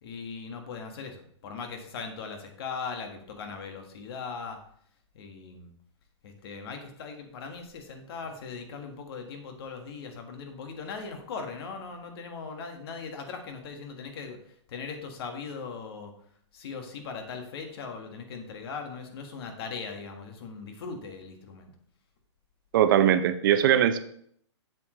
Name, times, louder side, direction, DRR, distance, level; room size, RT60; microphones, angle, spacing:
voice 1, 0.0-4.6 5.1-5.7 6.2-16.1 16.5-21.7, left 5 dB, 55° left, 4 dB, 1.6 m, -39 dB
voice 2, 22.7-24.0, right 10 dB, 45° right, 11 dB, 0.6 m, -21 dB
7.6 x 7.5 x 3.2 m, 0.64 s
hypercardioid pair, 160°, 15 cm